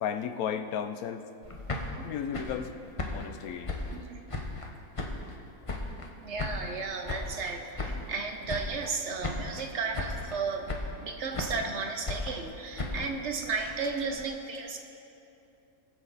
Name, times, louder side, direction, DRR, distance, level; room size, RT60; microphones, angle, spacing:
voice 1, 0.0-1.3 2.0-2.8 3.1-3.7, left 8 dB, 75° left, 9 dB, 1.1 m, -34 dB
sound 1, 1.4-4.7 4.9-6.1 6.4-8.2 8.5-9.0 9.2-9.7 9.9-10.4 10.7-11.7 12.1-14.2, left 2 dB, 25° left, 0.8 m, -36 dB
voice 2, 3.9-4.2 6.2-14.8, right 4 dB, 55° right, 4 dB, 1.0 m, -34 dB
19.5 x 7.5 x 4.1 m, 2.7 s
omnidirectional pair, 1.6 m